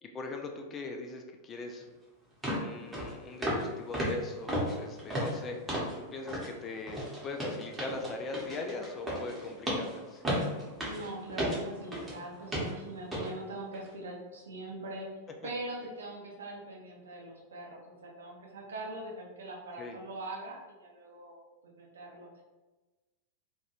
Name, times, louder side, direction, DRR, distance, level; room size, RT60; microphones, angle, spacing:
voice 1, 0.0-1.9 2.6-5.6 6.0-10.2 19.8-20.0, left 3 dB, 25° left, 3 dB, 0.3 m, -40 dB
sound 1, 1.8-1.9 2.4-2.7 2.9-3.1 3.4-3.7 3.9-6.0 6.3-6.5 6.9-12.2 12.5-12.7 13.1-13.3 13.7-13.9, equal, 10° right, 0.8 m, -34 dB
voice 2, 10.8-15.1 15.4-22.3, right 2 dB, 70° right, -2 dB, 0.6 m, -42 dB
2.2 x 2.1 x 2.9 m, 1.2 s
figure-of-eight pair, 90°, 0 cm